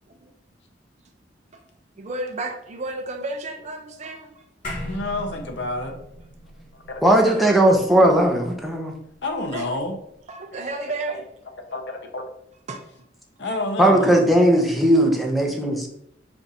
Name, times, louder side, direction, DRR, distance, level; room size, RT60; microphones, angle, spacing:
voice 1, 2.0-4.4 7.2-7.4 9.5-9.7 10.3-11.2 12.7-13.1 13.4-13.6, right 2 dB, 40° right, 5 dB, 0.5 m, -32 dB
sound 1, 4.6-9.3, left 1 dB, 45° left, 1.3 m, -38 dB
voice 2, 4.8-6.0 6.7-7.2 9.2-9.9 11.1-11.2 11.7-12.2 13.4-14.1, left 2 dB, 70° left, 4 dB, 0.8 m, -29 dB
voice 3, 7.0-8.9 13.8-15.9, right 1 dB, ahead, 0 dB, 0.7 m, -17 dB
4.5 x 2.5 x 4.0 m, 0.71 s
head